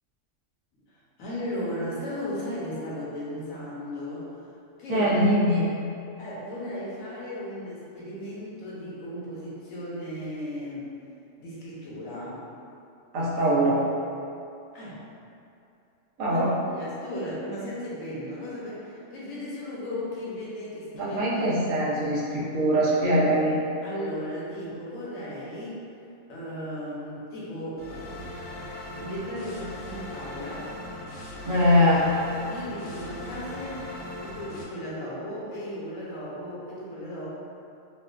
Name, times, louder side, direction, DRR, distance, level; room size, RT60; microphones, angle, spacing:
voice 1, 0.7-4.3 4.8-5.1 6.2-10.9 11.4-12.5 14.7-15.0 16.3-16.4 16.7-21.2 23.8-25.9 26.3-28.3 29.0-30.7 32.5-33.8 34.2-37.3, left 1 dB, 75° left, -7 dB, 1.2 m, -36 dB
voice 2, 4.9-5.7 13.1-13.8 16.2-16.5 20.9-23.6 31.4-32.0, equal, 75° right, -6 dB, 1.1 m, -22 dB
sound 1, 27.8-34.6, left 1 dB, 55° left, 0.8 m, -39 dB
4.6 x 2.2 x 2.4 m, 2.6 s
omnidirectional pair, 1.4 m